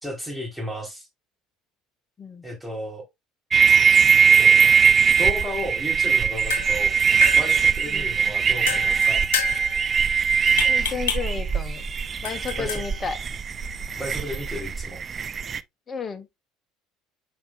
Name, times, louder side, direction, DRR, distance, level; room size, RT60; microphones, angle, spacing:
voice 1, 0.0-1.1 2.4-3.0 4.4-4.8 5.2-7.0 7.3-9.2 12.5-12.8 14.0-15.0, left 1 dB, ahead, 3.7 m, -34 dB
sound 1, 3.5-15.6, right 6 dB, 35° right, 0.5 m, -20 dB
sound 2, 6.2-14.8, left 8 dB, 70° left, 1.9 m, -33 dB
voice 2, 7.9-8.2 10.6-11.9 12.2-13.2 15.9-16.3, left 5 dB, 30° left, 1.0 m, -32 dB
9.0 x 5.1 x 2.4 m
figure-of-eight pair, 60°, 0 cm